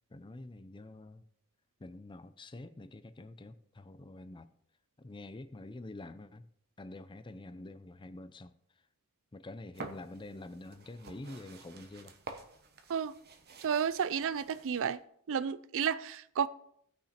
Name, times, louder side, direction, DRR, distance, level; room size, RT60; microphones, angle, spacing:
voice 1, 0.1-1.3 1.8-4.5 5.0-6.5 6.8-8.5 9.3-12.1, left 2 dB, 20° left, 0.5 m, -47 dB
sound 1, 9.7-14.9, right 3 dB, 45° right, 1.1 m, -50 dB
voice 2, 13.6-15.0 15.3-16.5, right 7 dB, 60° right, 0.4 m, -31 dB
16.0 x 5.9 x 4.3 m
head